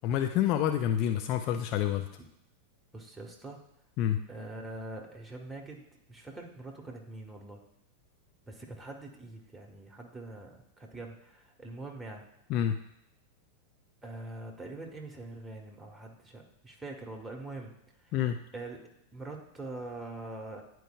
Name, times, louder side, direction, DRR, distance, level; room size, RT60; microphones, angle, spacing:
voice 1, 0.0-2.1 4.0-4.2 12.5-12.8 18.1-18.4, left 10 dB, 40° left, 6 dB, 0.4 m, -28 dB
voice 2, 2.9-3.6 4.3-7.6 8.5-12.3 14.0-17.7 18.0-18.1 18.5-20.6, right 2 dB, 10° right, 0 dB, 1.2 m, -44 dB
10.0 x 4.5 x 2.4 m, 0.79 s
figure-of-eight pair, 90°, 0 cm